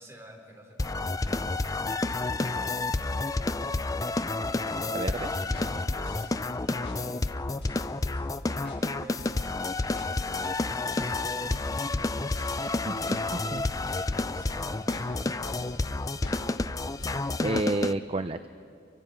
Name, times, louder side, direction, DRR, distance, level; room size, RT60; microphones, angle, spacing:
voice 1, 0.0-3.1 4.7-5.4 5.9-11.7 13.9-16.3, equal, 15° right, -1 dB, 4.1 m, -51 dB
sound 1, 0.8-17.9, left 2 dB, 20° left, 0.5 m, -30 dB
voice 2, 4.8-5.3 12.9-13.6 17.4-18.5, right 2 dB, 30° right, 10 dB, 0.6 m, -31 dB
sound 2, 5.3-6.4 6.8-7.0 7.3-7.9 8.1-8.3 8.6-8.8 9.2-9.4 10.0-10.1 10.5-10.6 11.0-13.3 13.6-14.1 14.4-14.6 14.9-15.1 15.4-15.7 16.2-16.4 16.7-17.2, left 1 dB, 70° left, 5.6 m, -45 dB
29.0 x 24.0 x 5.9 m, 2.5 s
head